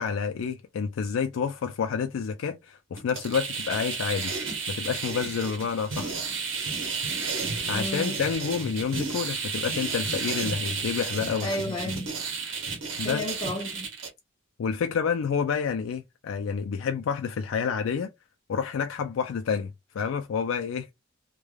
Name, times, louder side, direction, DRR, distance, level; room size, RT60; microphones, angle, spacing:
voice 1, 0.0-4.3 4.7-6.2 7.7-11.5 13.0-13.2 14.6-18.1 18.5-20.9, left 6 dB, 80° left, 0.3 m, -29 dB
sound 1, 3.0-14.1, right 5 dB, 75° right, 0.8 m, -32 dB
voice 2, 7.7-8.2 11.4-12.1 13.0-13.9, left 1 dB, 25° left, 0.5 m, -32 dB
3.2 x 2.2 x 2.2 m
head